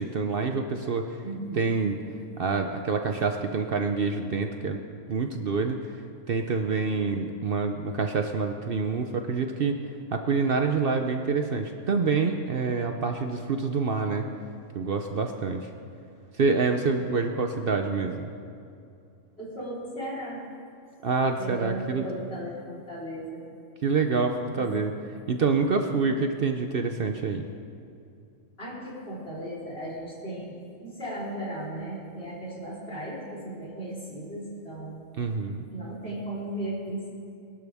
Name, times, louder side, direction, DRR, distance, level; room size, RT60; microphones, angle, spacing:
voice 1, 0.0-1.2 1.5-2.0 2.4-4.8 5.1-9.8 10.1-14.3 14.7-15.7 16.3-18.3 21.0-22.1 23.8-24.9 25.3-27.4 35.2-35.7, right 4 dB, 55° right, 5 dB, 0.8 m, -27 dB
voice 2, 1.2-1.8 9.2-9.3 19.4-20.4 21.4-23.4 24.5-24.9 28.6-30.5 30.8-35.0 35.6-37.1, right 1 dB, 55° left, -6 dB, 4.2 m, -36 dB
22.0 x 12.0 x 3.5 m, 2.5 s
omnidirectional pair, 1.3 m